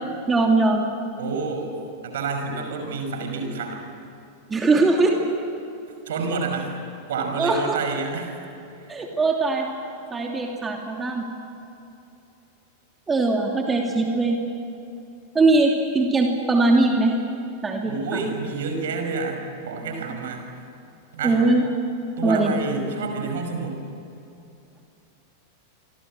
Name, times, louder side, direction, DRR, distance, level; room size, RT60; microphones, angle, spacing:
voice 1, 0.3-0.8 4.5-5.2 7.4-7.7 8.9-9.7 10.1-11.2 13.1-14.4 15.3-17.2 17.6-18.2 21.2-21.6 22.2-22.5, right 3 dB, 15° right, 1 dB, 2.8 m, -20 dB
voice 2, 1.2-1.8 2.0-3.8 6.1-6.7 7.1-8.4 8.8-8.9 17.8-20.5 21.1-21.4 22.2-23.8, right 4 dB, 60° right, 5 dB, 5.5 m, -28 dB
28.0 x 25.0 x 7.8 m, 2.8 s
figure-of-eight pair, 90°, 0 cm